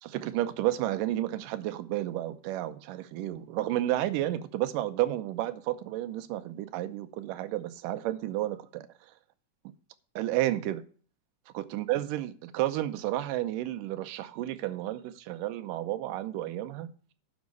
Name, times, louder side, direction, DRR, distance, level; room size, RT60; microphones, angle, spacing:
voice 1, 0.0-8.9 10.2-10.8 11.5-16.9, right 14 dB, 90° right, 2.4 m, -31 dB
10.5 x 6.4 x 4.6 m
omnidirectional pair, 3.7 m